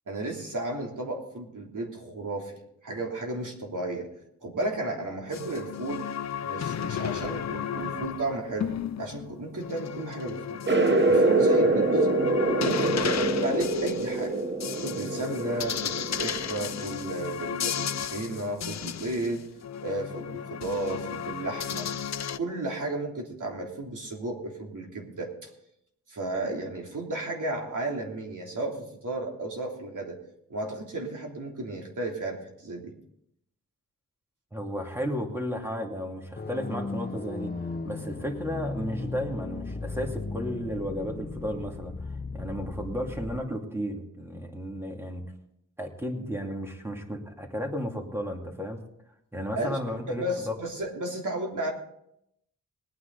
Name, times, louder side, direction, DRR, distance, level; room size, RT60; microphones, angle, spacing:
voice 1, 0.1-4.1 4.4-6.1 6.4-8.7 9.0-10.6 11.0-12.2 12.6-14.4 14.8-19.4 19.8-21.9 22.4-25.5 26.1-30.2 30.5-32.9 49.5-51.7, right 2 dB, 65° right, 0 dB, 3.2 m, -33 dB
sound 1, 5.3-22.4, left 8 dB, 55° left, 0.5 m, -34 dB
sound 2, 10.7-16.8, right 2 dB, 35° right, 1.1 m, -25 dB
voice 2, 34.5-45.2 45.8-48.8 49.3-50.6, equal, 5° right, 2 dB, 2.4 m, -34 dB
sound 3, 36.4-43.4, left 3 dB, 30° left, 1.0 m, -36 dB
20.5 x 9.5 x 4.0 m, 0.77 s
wide cardioid pair, 90°, 33 cm